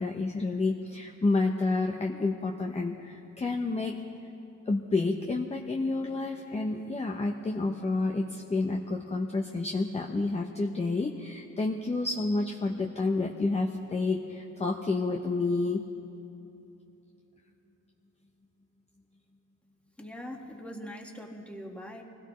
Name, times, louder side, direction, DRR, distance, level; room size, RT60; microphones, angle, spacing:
voice 1, 0.0-4.0 4.7-15.8, left 3 dB, 20° left, 2 dB, 0.9 m, -29 dB
voice 2, 20.0-22.0, equal, 5° left, 1 dB, 1.8 m, -42 dB
23.5 x 16.5 x 3.2 m, 2.9 s
cardioid pair, 90°, 30 cm